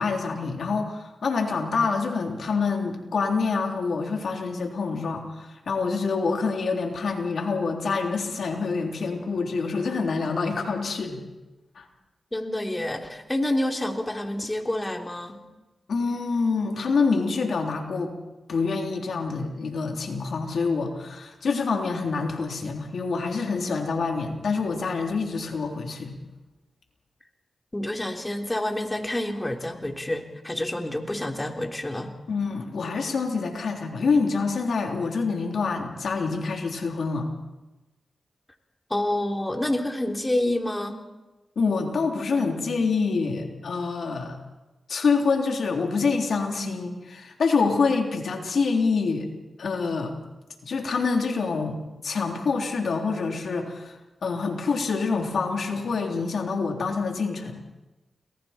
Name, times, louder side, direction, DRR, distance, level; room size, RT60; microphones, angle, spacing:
voice 1, 0.0-11.2 11.8-11.9 15.9-18.1 18.5-26.2 32.3-37.3 41.6-44.4 44.9-49.3 49.6-50.1 50.6-53.9 54.2-57.6, left 4 dB, 75° left, 2 dB, 3.6 m, -26 dB
voice 2, 12.3-15.4 27.7-32.2 38.9-41.0, left 1 dB, 20° left, 3 dB, 3.5 m, -28 dB
30.0 x 21.5 x 4.5 m, 1.1 s
cardioid pair, 45°, 0 cm